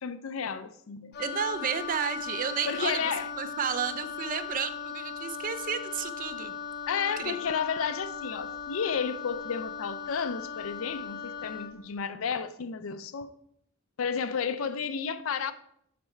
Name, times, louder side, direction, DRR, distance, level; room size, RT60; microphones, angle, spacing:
voice 1, 0.0-1.1 2.7-3.3 6.9-13.3 14.0-15.5, left 6 dB, 85° left, 0.5 m, -32 dB
Wind instrument woodwind instrument, 1.1-11.8, left 6 dB, 55° left, 0.9 m, -38 dB
voice 2, 1.2-3.0 3.3-6.5 7.2-7.4, right 7 dB, 45° right, 0.4 m, -32 dB
6.6 x 4.4 x 4.4 m
head